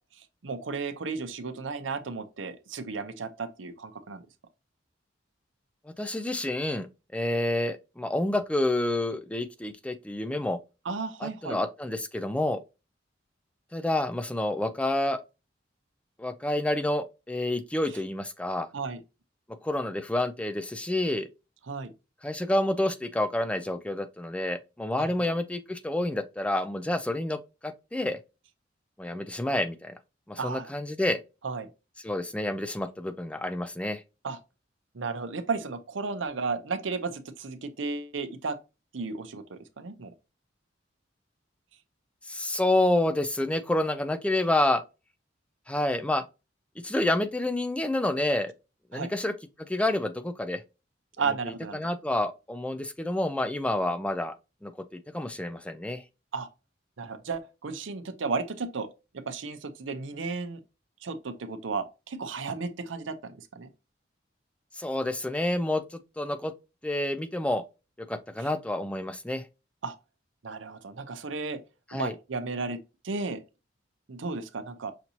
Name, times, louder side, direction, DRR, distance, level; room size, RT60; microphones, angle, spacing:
voice 1, 0.4-4.2 10.9-11.6 18.7-19.0 21.7-21.9 25.0-25.4 30.4-30.7 31.4-31.7 34.2-34.4 34.9-38.6 38.9-40.1 48.9-49.1 51.2-51.8 56.3-56.5 57.0-58.9 59.1-60.6 61.0-63.7 69.8-69.9 70.4-71.6 71.9-72.8 73.0-73.4 74.1-74.9, right 4 dB, 90° right, 0.7 m, -34 dB
voice 2, 6.0-6.9 7.1-10.6 11.2-12.6 13.7-15.2 16.2-18.7 19.6-21.3 22.2-28.2 29.0-29.9 30.3-31.2 32.0-34.0 42.2-44.8 45.7-46.2 46.8-48.5 48.9-49.3 49.7-50.6 51.5-54.3 54.6-56.0 64.7-66.5 66.8-67.6 68.0-69.5 71.9-72.2, left 1 dB, 5° left, 0.3 m, -28 dB
5.8 x 2.7 x 2.8 m
head